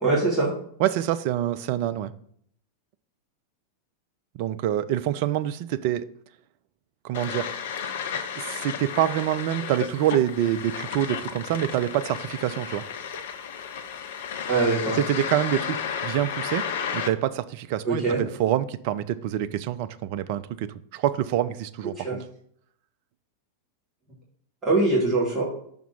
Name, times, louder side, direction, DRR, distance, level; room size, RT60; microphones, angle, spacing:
voice 1, 0.0-0.5 14.5-15.0 17.8-18.2 22.0-22.2 24.6-25.4, right 3 dB, 20° right, -5 dB, 2.1 m, -22 dB
voice 2, 0.8-2.1 4.3-6.1 7.0-7.5 8.4-12.8 14.9-16.6 16.9-22.2, right 12 dB, 45° right, 12 dB, 0.4 m, -26 dB
sound 1, 7.1-17.1, left 7 dB, 55° left, 0.5 m, -33 dB
5.8 x 3.6 x 5.7 m, 0.64 s
figure-of-eight pair, 90°, 0 cm